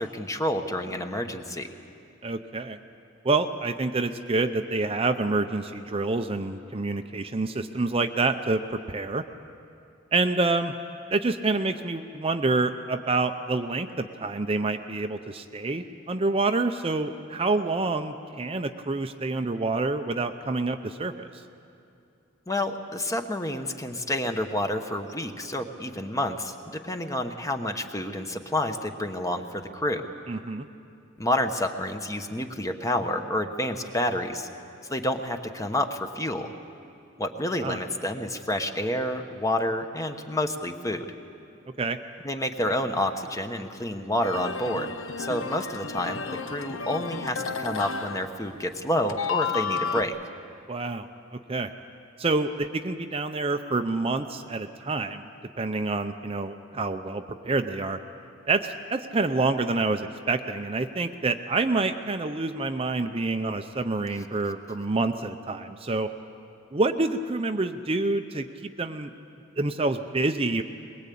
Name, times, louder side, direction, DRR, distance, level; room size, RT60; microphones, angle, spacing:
voice 1, 0.0-1.7 22.5-30.1 31.2-34.5 34.9-36.5 37.2-41.1 42.2-44.9 45.2-50.1, left 1 dB, 15° left, 6 dB, 1.1 m, -29 dB
voice 2, 2.2-2.8 3.2-9.2 10.1-10.7 11.1-21.3 30.3-30.7 37.6-37.8 41.8-42.0 50.7-51.7 52.2-55.3 55.6-58.0 58.5-66.1 66.7-69.1 69.6-70.6, right 3 dB, 30° right, 7 dB, 0.6 m, -27 dB
sound 1, 44.2-48.8 49.1-50.0, left 5 dB, 75° left, 0.9 m, -32 dB
22.0 x 21.5 x 8.5 m, 2.5 s
head